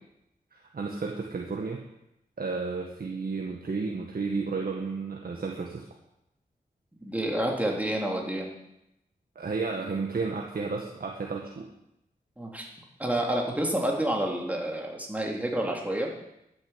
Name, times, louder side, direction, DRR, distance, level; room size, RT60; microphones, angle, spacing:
voice 1, 0.5-1.8 2.4-5.8 9.4-11.7, right 4 dB, 70° right, 0 dB, 1.8 m, -32 dB
voice 2, 7.0-8.5 12.4-12.7 13.0-16.1, right 1 dB, 10° right, -1 dB, 3.6 m, -29 dB
12.0 x 10.0 x 8.2 m, 0.83 s
wide cardioid pair, 75°, 16 cm